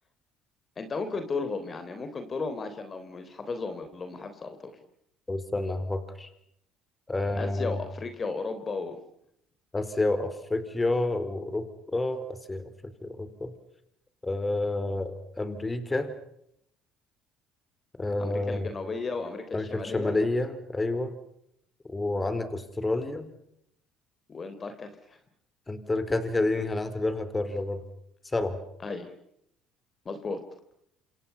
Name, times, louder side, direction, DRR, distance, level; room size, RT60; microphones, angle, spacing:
voice 1, 0.8-4.7 7.4-9.0 18.2-20.1 24.3-25.2 28.8-29.1 30.1-30.4, left 4 dB, 35° left, 8 dB, 3.5 m, -34 dB
voice 2, 5.3-6.3 7.1-7.8 9.7-11.7 11.9-13.5 14.2-16.1 18.0-18.7 19.5-21.1 21.9-23.3 25.7-27.8 28.2-28.6, left 2 dB, 20° left, 11 dB, 4.3 m, -29 dB
27.5 x 27.5 x 5.8 m, 0.75 s
hypercardioid pair, 70°, 0 cm